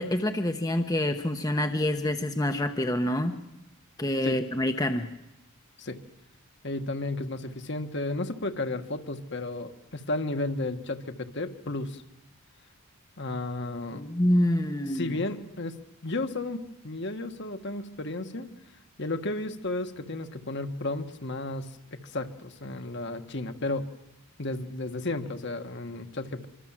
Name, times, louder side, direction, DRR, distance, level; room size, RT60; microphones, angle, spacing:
voice 1, 0.0-3.3 4.0-5.1 13.9-15.1, left 1 dB, 15° left, 6 dB, 1.0 m, -26 dB
voice 2, 6.6-12.0 13.2-14.0 14.9-15.8 16.0-18.5 19.0-23.9 24.4-26.5, left 2 dB, 55° left, 7 dB, 1.5 m, -33 dB
25.5 x 24.5 x 7.5 m, 0.94 s
head